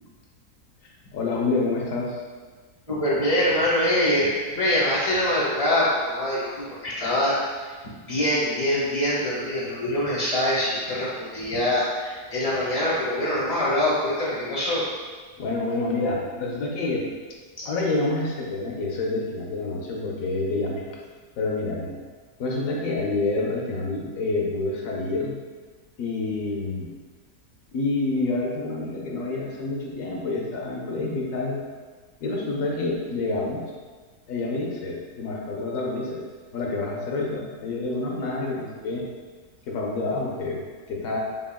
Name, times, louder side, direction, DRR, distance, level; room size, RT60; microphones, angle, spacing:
voice 1, 1.1-2.2 15.4-17.1 17.6-20.9 21.4-22.0 22.4-25.4 26.0-26.9 27.7-31.6 32.2-33.6 34.3-36.2 36.5-39.0 39.7-40.6 40.9-41.2, left 2 dB, 65° left, -1 dB, 1.0 m, -28 dB
voice 2, 2.9-7.4 8.1-14.8 17.6-17.7, left 1 dB, 30° left, -6 dB, 0.7 m, -24 dB
3.6 x 3.6 x 2.2 m, 1.4 s
omnidirectional pair, 1.7 m